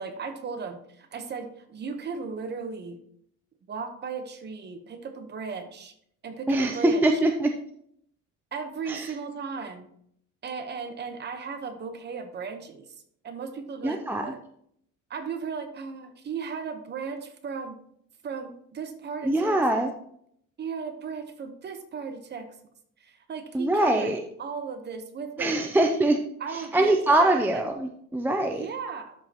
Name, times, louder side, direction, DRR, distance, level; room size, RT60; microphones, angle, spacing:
voice 1, 0.0-3.0 3.7-5.9 6.2-7.0 8.5-9.9 10.4-12.9 13.2-14.4 15.1-17.8 18.2-19.6 20.6-22.6 23.0-25.7 26.4-26.9 27.2-27.6 28.5-29.3, right 5 dB, 30° right, 7 dB, 1.0 m, -36 dB
voice 2, 6.5-7.5 8.9-9.1 13.8-14.3 19.2-19.9 23.5-24.2 25.4-26.2 26.5-28.7, right 1 dB, 5° right, 4 dB, 0.5 m, -23 dB
12.5 x 5.1 x 2.9 m, 0.68 s
cardioid pair, 155°, 33 cm